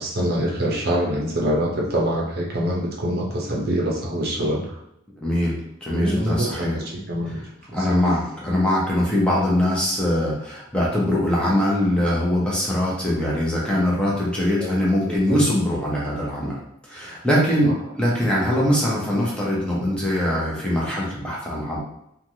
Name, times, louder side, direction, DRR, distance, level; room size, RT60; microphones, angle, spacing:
voice 1, 0.0-4.8 5.9-7.4 7.7-8.0 14.6-14.8 15.0-15.4 17.6-17.7, equal, 55° right, -2 dB, 0.6 m, -25 dB
voice 2, 5.2-6.8 7.7-16.5 16.9-21.8, left 1 dB, 5° left, -6 dB, 0.7 m, -22 dB
3.1 x 2.3 x 2.7 m, 0.80 s
head